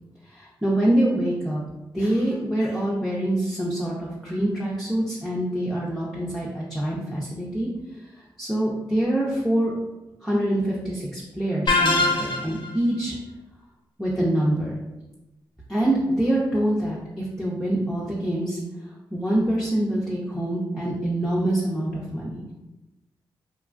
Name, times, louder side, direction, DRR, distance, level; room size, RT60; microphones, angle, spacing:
voice 1, 0.3-1.6 1.9-9.7 10.2-13.1 14.0-14.7 15.7-18.6 19.1-22.5, right 1 dB, ahead, -5 dB, 0.7 m, -25 dB
sound 1, 11.7-12.7, left 2 dB, 55° left, 0.6 m, -21 dB
3.0 x 2.3 x 2.5 m, 0.99 s
supercardioid pair, 40°, 10 cm